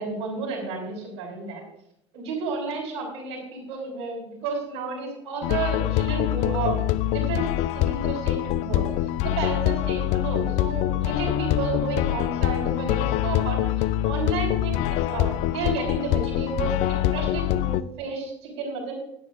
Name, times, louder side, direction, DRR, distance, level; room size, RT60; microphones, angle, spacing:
voice 1, 0.0-1.6 2.1-6.8 7.1-7.5 7.7-8.9 9.2-13.6 14.0-19.0, right 4 dB, 70° right, -3 dB, 4.9 m, -32 dB
sound 1, 5.4-17.8, left 13 dB, 50° left, 0.4 m, -24 dB
17.5 x 9.6 x 2.6 m, 0.79 s
figure-of-eight pair, 70°, 14 cm